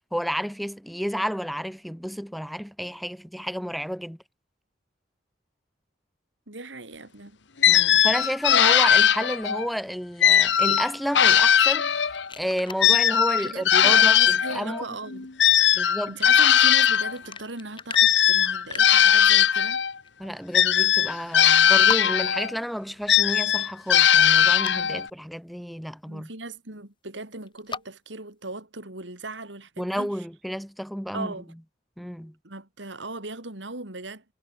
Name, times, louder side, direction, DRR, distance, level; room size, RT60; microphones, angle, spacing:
voice 1, 0.1-4.2 7.7-14.8 15.7-16.1 20.2-26.3 29.8-31.3 32.0-32.3, equal, ahead, 0.9 m, -31 dB
voice 2, 6.5-7.4 7.8-7.9 13.4-19.8 24.7-25.0 26.1-30.1 31.1-31.5 32.4-34.2, right 2 dB, 85° right, 3.9 m, -38 dB
sound 1, 7.6-9.7 10.2-12.3 12.8-17.1 17.9-19.9 20.5-22.5 23.1-25.1, left 9 dB, 75° left, 1.2 m, -19 dB
sound 2, 12.0-12.9 16.0-19.1 19.5-19.7 20.0-20.1 21.2-21.3 21.5-21.6 21.9-22.0 24.2-24.7 27.4-27.8, left 5 dB, 30° left, 5.1 m, -37 dB
head